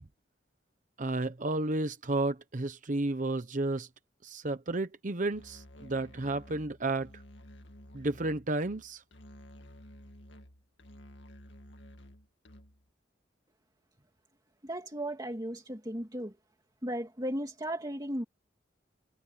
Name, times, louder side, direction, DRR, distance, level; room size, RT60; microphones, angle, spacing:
voice 1, 1.0-3.9 4.2-7.1 7.9-9.0, right 2 dB, 45° right, 1.0 m, -32 dB
Musical instrument, 5.3-12.9, equal, 85° left, 2.2 m, -52 dB
voice 2, 14.6-16.3 16.8-18.2, right 1 dB, 20° right, 2.4 m, -35 dB
head